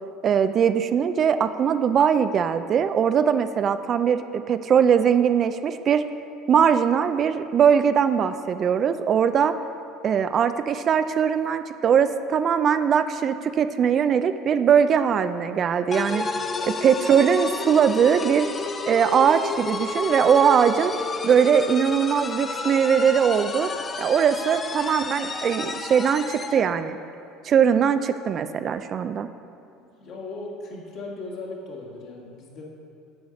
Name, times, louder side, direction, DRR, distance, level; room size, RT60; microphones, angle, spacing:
voice 1, 0.2-6.0 6.5-9.6 10.0-16.3 16.7-18.5 18.9-20.9 21.2-23.7 24.0-27.0 27.4-29.3, right 7 dB, 45° right, 11 dB, 0.4 m, -21 dB
voice 2, 15.9-16.6 29.7-32.6, left 2 dB, 60° left, -3 dB, 2.1 m, -38 dB
sound 1, 15.9-26.6, left 3 dB, 25° left, 0.6 m, -31 dB
7.8 x 4.9 x 7.1 m, 2.5 s
supercardioid pair, 90°, 0 cm